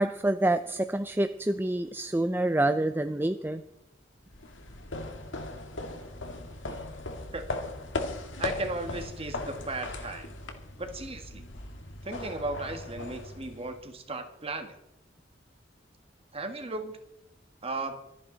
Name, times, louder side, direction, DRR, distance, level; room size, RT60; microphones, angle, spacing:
voice 1, 0.0-3.6 6.7-6.8, right 1 dB, 10° right, 9 dB, 0.5 m, -27 dB
sound 1, 4.3-13.9, left 2 dB, 80° left, 1.9 m, -38 dB
voice 2, 8.4-10.3 10.8-11.4 12.0-14.8 16.3-17.0 17.6-18.0, right 2 dB, 30° right, 6 dB, 1.8 m, -36 dB
25.5 x 9.7 x 4.0 m, 0.86 s
head